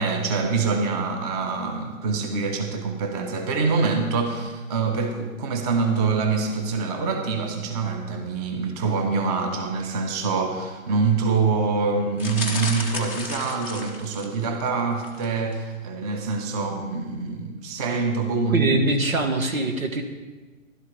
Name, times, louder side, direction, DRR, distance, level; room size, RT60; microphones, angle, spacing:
voice 1, 0.0-18.7, right 4 dB, 30° right, 5 dB, 1.2 m, -25 dB
sound 1, 12.2-14.5 15.0-15.3 15.5-15.6, left 2 dB, 5° right, 0.6 m, -33 dB
voice 2, 18.5-20.0, right 2 dB, 90° right, 6 dB, 1.7 m, -23 dB
15.5 x 12.0 x 3.4 m, 1.2 s
hypercardioid pair, 145°, 41 cm